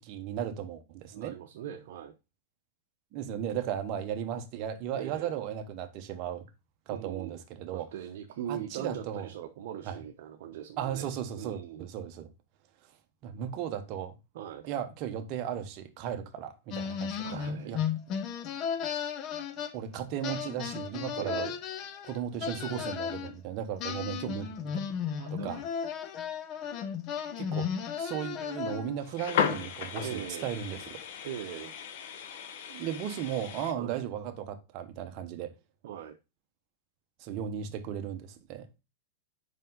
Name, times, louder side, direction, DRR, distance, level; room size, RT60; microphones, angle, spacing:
voice 1, 0.0-1.4 3.1-6.5 6.9-7.9 8.5-9.3 9.8-10.0 10.8-12.3 12.8-12.9 13.2-14.2 14.7-17.8 19.7-21.5 22.0-24.9 25.3-25.6 27.4-27.7 28.0-31.0 32.7-35.5 37.2-38.7, right 9 dB, 40° right, 1.1 m, -36 dB
voice 2, 1.1-2.1 4.9-5.4 6.9-7.3 7.7-11.1 11.4-11.9 14.3-14.7 17.2-17.8 21.2-21.5 25.2-25.6 30.0-30.5 31.2-31.7 33.8-34.0 35.8-36.2, right 10 dB, 60° right, 0.9 m, -40 dB
sound 1, 16.7-20.0 20.2-23.3 23.8-29.1, left 7 dB, 35° left, 0.8 m, -35 dB
sound 2, 29.0-33.7, left 7 dB, 60° left, 1.1 m, -35 dB
5.3 x 5.3 x 3.8 m
supercardioid pair, 145°, 0 cm